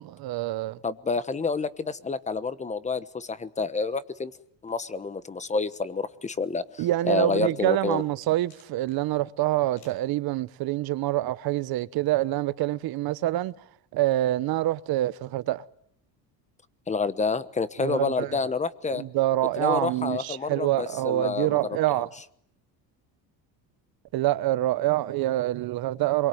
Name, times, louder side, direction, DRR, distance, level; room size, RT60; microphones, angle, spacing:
voice 1, 0.0-0.8 6.8-13.5 13.9-15.6 17.8-18.5 18.9-22.1 24.1-26.3, right 15 dB, 60° right, 1.1 m, -26 dB
voice 2, 0.8-4.3 4.6-8.0 16.9-19.0 19.6-21.6 21.9-22.0, left 4 dB, 15° left, 1.1 m, -28 dB
sound 1, 7.1-9.0 9.7-10.1, left 6 dB, 90° left, 7.6 m, -58 dB
28.0 x 23.0 x 9.3 m
cardioid pair, 150°, 41 cm